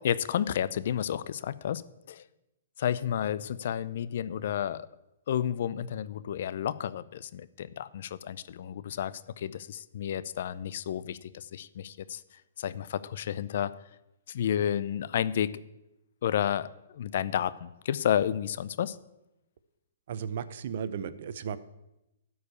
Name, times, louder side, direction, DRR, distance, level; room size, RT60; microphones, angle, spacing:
voice 1, 0.0-1.8 2.1-2.2 2.8-4.9 5.3-12.2 12.6-13.7 14.3-15.6 16.2-19.0, left 9 dB, 60° left, 16 dB, 0.5 m, -31 dB
voice 2, 20.1-21.6, right 7 dB, 60° right, 15 dB, 0.7 m, -35 dB
13.5 x 4.8 x 8.4 m, 0.91 s
hypercardioid pair, 130°, 0 cm